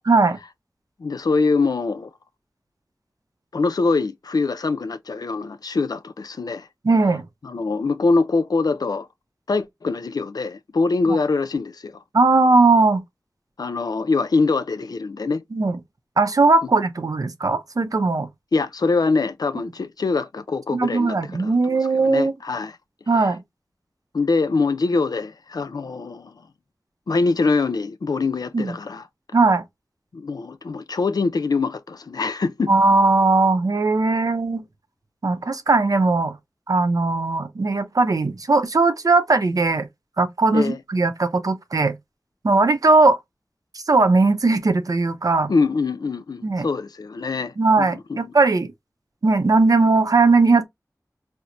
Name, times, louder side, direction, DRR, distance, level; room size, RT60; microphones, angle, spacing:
voice 1, 0.1-0.4 6.8-7.2 11.1-11.2 12.1-13.0 15.5-15.8 16.2-18.3 20.7-22.3 23.1-23.4 28.5-28.7 29.3-29.6 32.7-34.6 35.2-36.4 36.7-39.9 40.2-42.0 42.4-43.2 43.7-45.5 46.4-46.7 47.6-48.7 49.2-50.7, right 3 dB, 65° right, 0.6 m, -18 dB
voice 2, 1.0-2.1 3.5-6.7 7.4-9.1 9.5-12.0 13.6-15.4 18.5-22.8 23.2-23.3 24.1-26.3 27.1-29.0 30.1-32.7 40.5-40.8 45.5-48.3, left 4 dB, 80° left, 0.4 m, -23 dB
4.3 x 2.1 x 2.5 m
wide cardioid pair, 55°, 7 cm